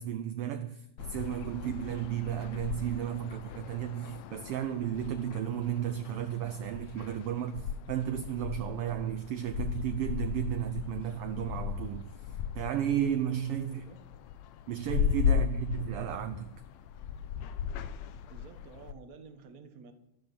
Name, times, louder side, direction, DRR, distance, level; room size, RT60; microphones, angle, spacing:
voice 1, 0.0-13.8 14.7-16.5, right 10 dB, 75° right, 1.4 m, -34 dB
sound 1, 1.0-18.9, left 8 dB, 75° left, 1.9 m, -36 dB
voice 2, 13.7-14.2 18.2-19.9, right 5 dB, 40° right, 1.4 m, -51 dB
12.5 x 12.5 x 6.2 m
omnidirectional pair, 3.3 m